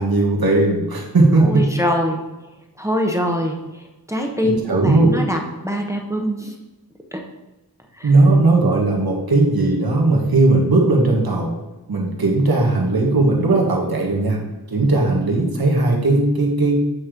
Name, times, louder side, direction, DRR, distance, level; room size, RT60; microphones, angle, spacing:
voice 1, 0.0-1.7 4.4-5.2 8.0-11.5 11.9-14.4 14.7-16.9, right 2 dB, 75° right, 0 dB, 1.5 m, -17 dB
voice 2, 1.4-2.2 2.8-3.6 4.1-6.5 7.1-7.2 8.0-8.1, equal, 10° right, 1 dB, 0.9 m, -23 dB
8.3 x 3.1 x 5.1 m, 1.0 s
wide cardioid pair, 70°, 37 cm